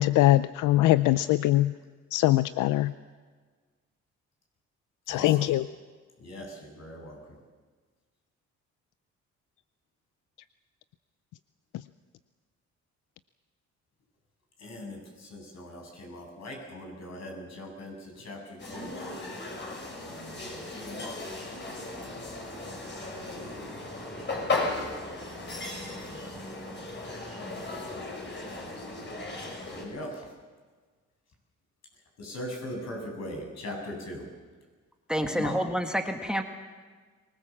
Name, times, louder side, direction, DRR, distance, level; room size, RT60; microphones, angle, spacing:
voice 1, 0.0-1.7 2.1-2.9 5.1-5.6, left 15 dB, 85° left, 14 dB, 0.6 m, -22 dB
voice 2, 5.1-5.5 6.2-7.4 14.6-19.0 19.7-19.8 20.0-21.2 21.7-21.8 25.8-25.9 29.7-30.3 32.2-34.3 35.2-35.6, left 1 dB, 60° left, 1 dB, 7.8 m, -40 dB
sound 1, 18.6-29.8, left 2 dB, 35° left, 6.6 m, -36 dB
voice 3, 35.1-36.4, equal, 5° right, 5 dB, 1.7 m, -28 dB
24.5 x 19.0 x 7.4 m, 1.5 s
cardioid pair, 90°, 30 cm